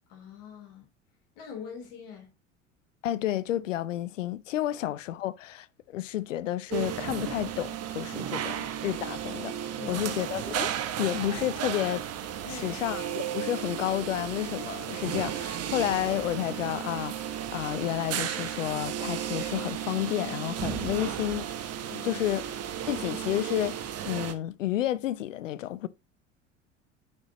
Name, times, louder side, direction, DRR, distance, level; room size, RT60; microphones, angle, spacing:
voice 1, 0.1-0.9 1.4-2.4 8.4-8.6 9.8-10.1 12.4-12.8 20.9-21.1 21.9-22.3, left 7 dB, 65° left, 3.4 m, -44 dB
voice 2, 3.0-9.6 9.9-10.7 11.0-12.0 12.5-21.4 22.0-22.4 22.9-25.9, left 13 dB, 85° left, 0.6 m, -31 dB
sound 1, 6.7-24.3, right 10 dB, 40° right, 1.3 m, -34 dB
8.7 x 5.9 x 3.0 m
hypercardioid pair, 75°, 37 cm